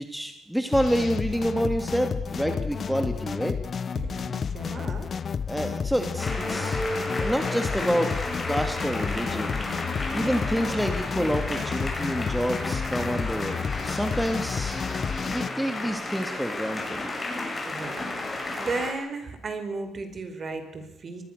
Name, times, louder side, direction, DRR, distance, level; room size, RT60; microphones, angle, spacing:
voice 1, 0.0-3.5 5.5-6.8 7.2-8.1 8.5-9.6 10.1-13.6 13.8-14.8 15.2-17.0, equal, ahead, 6 dB, 2.5 m, -28 dB
sound 1, 0.7-15.5, left 6 dB, 45° left, 0.8 m, -31 dB
voice 2, 3.9-5.1 17.6-21.3, right 3 dB, 40° right, 8 dB, 4.9 m, -35 dB
sound 2, 6.2-18.9, left 2 dB, 25° left, 7.5 m, -32 dB
24.0 x 20.5 x 6.8 m, 0.95 s
cardioid pair, 90°, 0 cm